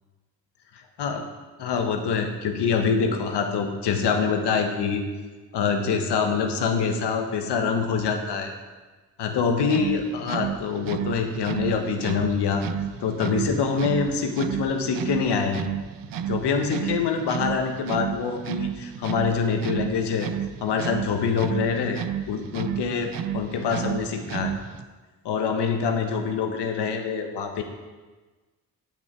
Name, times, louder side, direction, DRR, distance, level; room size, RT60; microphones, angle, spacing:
voice 1, 1.6-5.0 5.5-8.5 9.2-12.6 13.0-15.6 16.3-20.3 20.6-24.5 25.2-27.6, left 5 dB, 75° left, 4 dB, 1.4 m, -25 dB
sound 1, 9.6-24.8, right 9 dB, 55° right, 0.6 m, -32 dB
9.2 x 8.6 x 4.6 m, 1.3 s
supercardioid pair, 50°, 41 cm